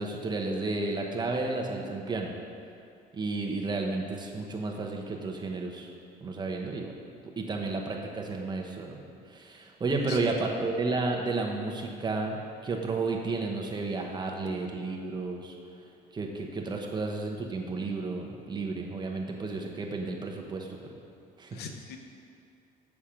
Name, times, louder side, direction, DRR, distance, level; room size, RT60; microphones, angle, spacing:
voice 1, 0.0-2.3 3.1-5.9 6.2-6.9 7.4-9.0 9.3-15.5 16.1-20.9 21.4-21.6, right 3 dB, 25° right, 1 dB, 1.0 m, -32 dB
voice 2, 10.0-10.5 21.5-22.0, left 6 dB, 75° left, 4 dB, 0.8 m, -42 dB
7.2 x 5.8 x 5.1 m, 2.5 s
cardioid pair, 110°, 17 cm